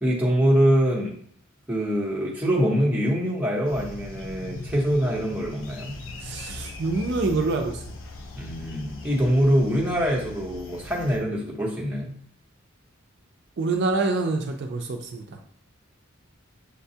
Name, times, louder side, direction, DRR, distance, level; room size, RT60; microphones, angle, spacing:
voice 1, 0.0-1.1 1.7-6.0 8.4-12.2, equal, 10° right, -3 dB, 0.8 m, -24 dB
sound 1, 3.6-11.2, left 2 dB, 80° left, 0.6 m, -40 dB
voice 2, 6.2-8.0 13.6-15.4, right 3 dB, 55° right, 3 dB, 0.4 m, -26 dB
6.5 x 2.2 x 2.7 m, 0.62 s
head